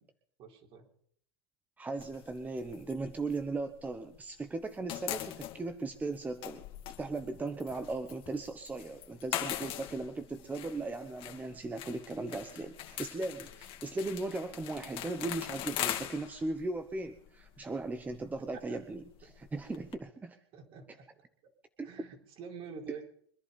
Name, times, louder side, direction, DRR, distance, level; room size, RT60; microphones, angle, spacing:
voice 1, 0.4-0.9 18.4-18.8 20.5-21.1 21.4-21.5 21.8-23.0, right 6 dB, 45° right, 3 dB, 4.1 m, -47 dB
voice 2, 1.8-6.6 7.0-20.4 21.8-22.1, right 3 dB, 10° right, 9 dB, 1.0 m, -38 dB
sound 1, 2.0-4.2 4.5-20.0, left 12 dB, 40° left, 2.5 m, -42 dB
24.0 x 11.0 x 5.3 m, 0.64 s
supercardioid pair, 125°, 13 cm